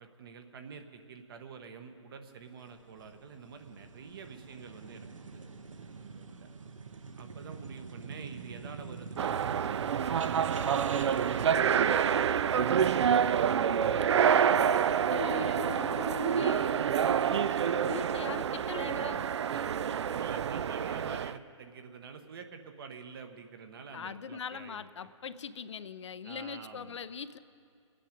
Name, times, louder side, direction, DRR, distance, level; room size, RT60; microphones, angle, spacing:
voice 1, 0.0-5.4 6.0-6.5 7.2-14.0 19.5-24.9 26.2-27.0, right 5 dB, 45° right, 7 dB, 1.1 m, -48 dB
sound 1, 2.6-11.5, right 5 dB, 85° right, 1.0 m, -45 dB
sound 2, 9.2-21.4, right 8 dB, 60° right, 0.4 m, -27 dB
voice 2, 14.5-19.3 23.9-27.4, left 7 dB, 65° left, 13 dB, 0.6 m, -41 dB
23.0 x 9.2 x 5.2 m, 2.4 s
hypercardioid pair, 150°, 16 cm